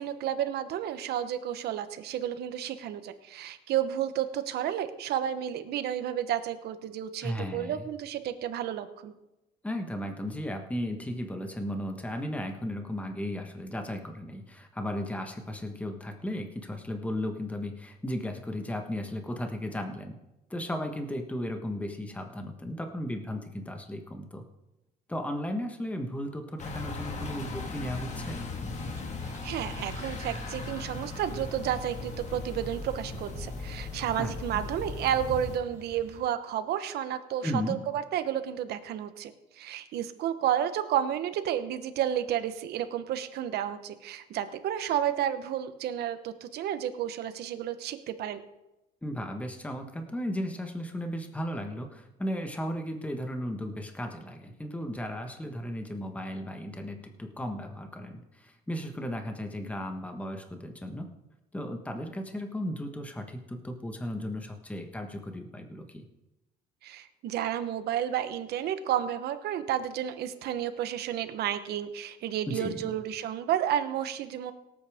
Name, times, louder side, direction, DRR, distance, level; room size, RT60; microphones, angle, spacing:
voice 1, 0.0-9.1 29.2-48.4 66.8-74.5, right 10 dB, 70° right, 10 dB, 1.0 m, -31 dB
voice 2, 7.2-7.9 9.6-20.2 20.5-24.4 25.1-28.4 34.2-34.3 37.4-37.8 49.0-61.1 61.5-66.0 72.5-72.9, equal, 10° left, 5 dB, 1.3 m, -35 dB
sound 1, 26.6-35.6, left 3 dB, 45° left, 1.8 m, -37 dB
sound 2, 28.6-36.2, right 1 dB, 15° right, 3.2 m, -52 dB
18.0 x 8.7 x 3.6 m, 0.95 s
cardioid pair, 110°, 17 cm